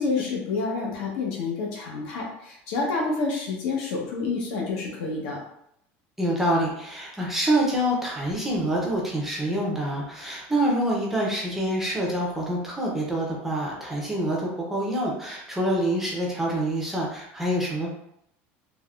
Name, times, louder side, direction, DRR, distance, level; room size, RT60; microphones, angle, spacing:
voice 1, 0.0-5.4, left 4 dB, 70° left, -1 dB, 0.8 m, -28 dB
voice 2, 6.2-17.9, right 1 dB, 5° right, -3 dB, 0.5 m, -26 dB
3.4 x 2.1 x 2.3 m, 0.75 s
cardioid pair, 170°, 6 cm